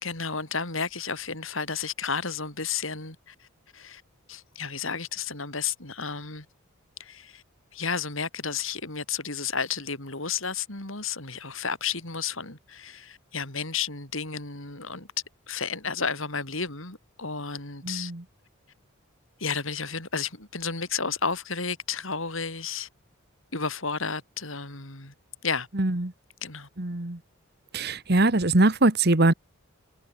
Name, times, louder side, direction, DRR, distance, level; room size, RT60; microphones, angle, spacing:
voice 1, 0.0-3.5 3.7-4.0 4.3-6.5 7.0-7.4 7.7-15.1 15.5-18.1 19.4-22.9 23.5-25.1 25.4-25.7 26.4-26.7, left 5 dB, 70° left, 5.2 m, -32 dB
voice 2, 17.9-18.2 25.8-26.1 26.8-27.2 27.7-29.3, right 2 dB, 50° right, 1.6 m, -22 dB
head